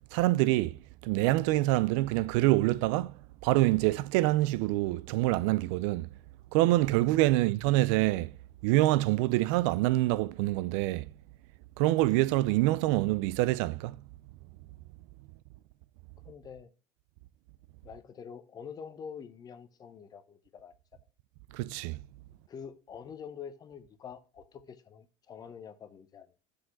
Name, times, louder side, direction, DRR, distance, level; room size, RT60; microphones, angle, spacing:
voice 1, 0.1-0.8 1.0-3.2 3.4-6.1 6.5-8.3 8.6-11.1 11.8-14.0 21.5-22.0, right 17 dB, 80° right, 0.4 m, -26 dB
voice 2, 16.2-16.7 17.8-21.0 22.5-26.4, left 7 dB, 25° left, 0.7 m, -46 dB
6.3 x 5.0 x 5.8 m
cardioid pair, 165°, 16 cm